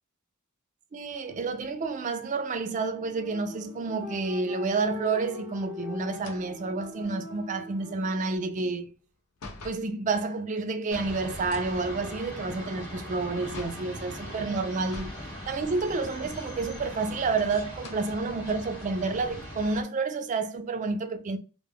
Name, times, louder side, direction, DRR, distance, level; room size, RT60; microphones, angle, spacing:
voice 1, 0.9-8.9 9.6-15.1 15.5-21.4, right 3 dB, 35° right, 0.3 m, -30 dB
sound 1, 1.1-8.4, left 4 dB, 60° left, 0.8 m, -43 dB
sound 2, 6.1-9.9 11.4-13.9 14.8-15.3 15.6-15.7 16.8-17.3 17.7-18.1 18.7-18.8 19.2-20.6, left 2 dB, 90° left, 0.6 m, -47 dB
sound 3, 10.9-19.8, equal, 15° left, 1.0 m, -40 dB
2.2 x 2.0 x 3.3 m
head